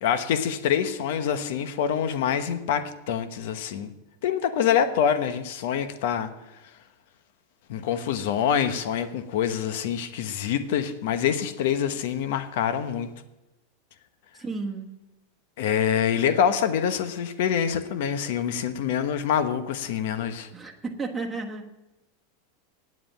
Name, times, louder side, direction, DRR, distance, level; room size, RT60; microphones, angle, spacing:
voice 1, 0.0-3.9 4.2-6.3 7.7-13.1 15.6-20.5, left 8 dB, 60° left, 10 dB, 1.1 m, -25 dB
voice 2, 14.3-14.9 20.5-21.7, right 3 dB, 10° right, 1 dB, 1.3 m, -33 dB
9.7 x 7.8 x 8.9 m, 0.98 s
supercardioid pair, 165°, 0 cm